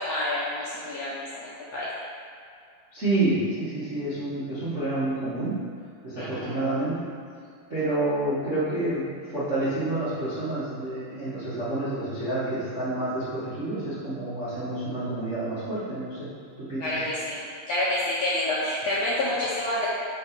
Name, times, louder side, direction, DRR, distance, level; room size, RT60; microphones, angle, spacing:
voice 1, 0.0-1.9 6.2-6.6 16.8-17.4 17.7-19.9, left 1 dB, 75° left, -8 dB, 1.5 m, -28 dB
voice 2, 2.9-5.5 6.0-6.9 7.7-16.3 16.6-16.8, right 2 dB, 55° right, -14 dB, 0.8 m, -28 dB
4.7 x 4.4 x 5.8 m, 2.3 s
omnidirectional pair, 4.0 m